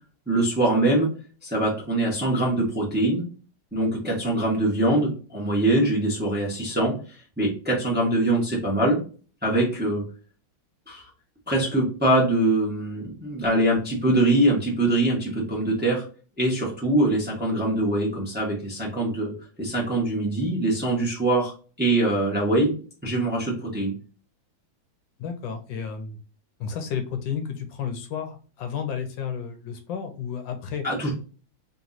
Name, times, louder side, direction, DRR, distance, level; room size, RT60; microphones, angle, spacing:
voice 1, 0.3-1.1 1.4-3.2 3.7-9.0 9.4-10.0 10.9-11.0 11.5-16.0 16.4-21.5 21.8-22.7 23.0-23.9 30.8-31.1, right 1 dB, 5° right, -4 dB, 0.9 m, -23 dB
voice 2, 25.2-26.2 26.6-30.9, left 7 dB, 75° left, 6 dB, 1.3 m, -32 dB
3.5 x 3.0 x 3.9 m, 0.38 s
omnidirectional pair, 2.2 m